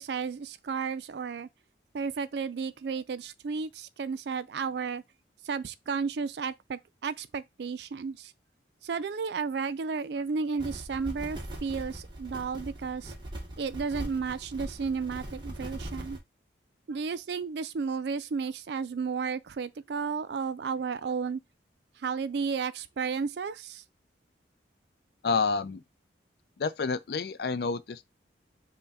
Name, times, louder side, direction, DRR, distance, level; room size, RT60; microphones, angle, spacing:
voice 1, 0.0-1.5 1.9-5.0 5.5-8.3 8.8-13.1 13.6-16.2 16.9-21.4 22.0-23.8, right 5 dB, 65° right, 0.4 m, -33 dB
sound 1, 10.6-16.2, right 1 dB, 25° right, 1.0 m, -40 dB
voice 2, 25.2-25.8 26.6-28.1, left 4 dB, 60° left, 0.4 m, -29 dB
5.6 x 2.2 x 4.0 m
head